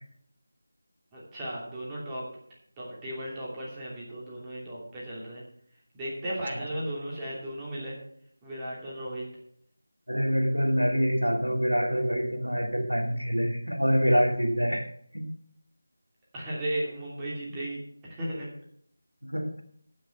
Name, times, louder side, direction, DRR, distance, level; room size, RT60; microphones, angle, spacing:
voice 1, 1.1-2.2 2.8-5.4 5.9-8.0 8.4-9.3 16.3-17.8 18.1-18.5, right 1 dB, 10° right, -6 dB, 2.8 m, -35 dB
voice 2, 10.1-15.2 19.2-19.6, equal, 85° right, 3 dB, 2.4 m, -26 dB
15.0 x 6.5 x 5.5 m, 0.65 s
figure-of-eight pair, 165°, 0 cm